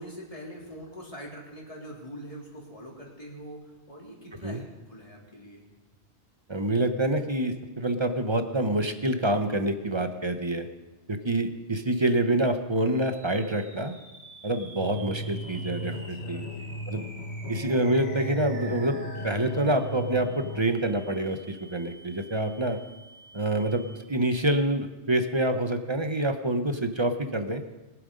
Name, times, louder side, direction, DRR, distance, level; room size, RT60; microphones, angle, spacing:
voice 1, 0.0-5.6 15.9-16.8, equal, 30° left, -3 dB, 3.2 m, -44 dB
voice 2, 6.5-10.7 11.1-13.9 14.4-16.4 16.9-17.0 17.5-22.8 23.3-27.6, right 1 dB, 25° right, 7 dB, 0.8 m, -27 dB
sound 1, 12.8-24.3, right 1 dB, 85° right, 2.8 m, -49 dB
sound 2, 14.8-20.6, right 1 dB, 70° left, 1.6 m, -36 dB
22.0 x 7.8 x 5.2 m, 1.1 s
omnidirectional pair, 1.2 m